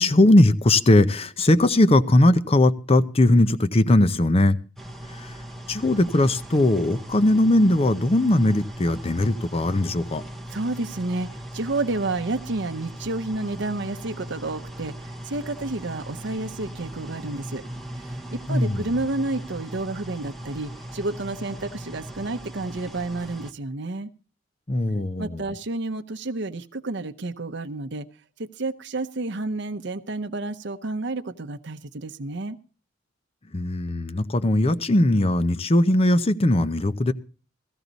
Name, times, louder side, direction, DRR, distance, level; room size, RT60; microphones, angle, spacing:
voice 1, 0.0-4.6 5.2-5.3 5.7-10.2 18.5-18.8 24.7-25.4 33.5-37.1, left 1 dB, 30° left, 13 dB, 0.7 m, -19 dB
sound 1, 4.8-23.5, right 1 dB, ahead, 1.0 m, -39 dB
voice 2, 10.5-17.6 18.0-24.1 25.2-28.1 28.4-32.6, right 2 dB, 65° right, 6 dB, 0.8 m, -30 dB
16.0 x 14.0 x 4.0 m, 0.38 s
head